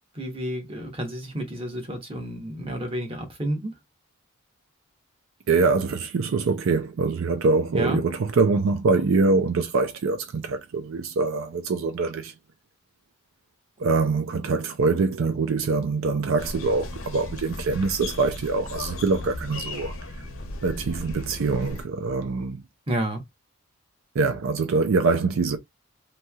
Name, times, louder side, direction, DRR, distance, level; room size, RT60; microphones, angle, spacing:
voice 1, 0.1-3.7 7.7-8.0 22.9-23.2, right 1 dB, 25° right, 0.9 m, -30 dB
voice 2, 5.5-12.3 13.8-20.0 20.6-22.6 24.1-25.6, right 4 dB, 70° right, 0.4 m, -24 dB
sound 1, 16.4-21.9, left 2 dB, 75° left, 0.8 m, -36 dB
3.0 x 2.7 x 2.3 m
head